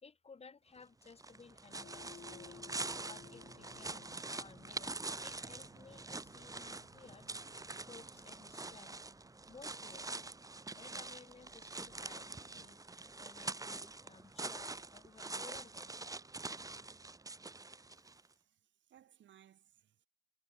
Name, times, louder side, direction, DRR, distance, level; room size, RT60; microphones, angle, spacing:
voice 1, 0.0-2.6 3.0-7.3 7.9-9.0 9.5-10.3 10.7-12.8 13.2-15.9, left 5 dB, 30° left, 1.5 m, -58 dB
sound 1, 1.1-18.3, right 3 dB, 15° right, 1.4 m, -45 dB
sound 2, 1.7-10.2, left 7 dB, 45° left, 5.1 m, -60 dB
voice 2, 17.9-20.1, right 10 dB, 70° right, 7.1 m, -65 dB
cardioid pair, 90°, 20 cm